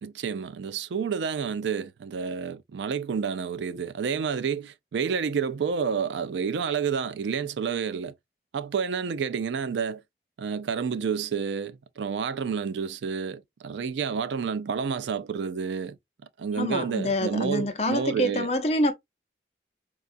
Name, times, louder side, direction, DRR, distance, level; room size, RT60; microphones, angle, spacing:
voice 1, 0.0-8.1 8.5-10.0 10.4-16.0 16.4-18.5, right 6 dB, 90° right, 0.4 m, -29 dB
voice 2, 16.6-18.9, left 1 dB, 35° left, 0.6 m, -26 dB
4.7 x 2.3 x 2.5 m
head